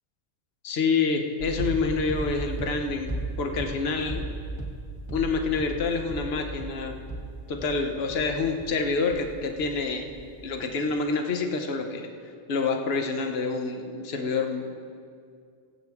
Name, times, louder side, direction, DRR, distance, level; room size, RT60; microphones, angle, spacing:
voice 1, 0.6-4.2 5.1-7.0 7.5-10.1 10.4-12.1 12.5-14.8, left 4 dB, 55° left, 4 dB, 1.2 m, -27 dB
sound 1, 1.4-9.8 10.1-10.6, right 2 dB, 20° left, 1.9 m, -36 dB
23.0 x 8.1 x 3.6 m, 2.3 s
omnidirectional pair, 1.3 m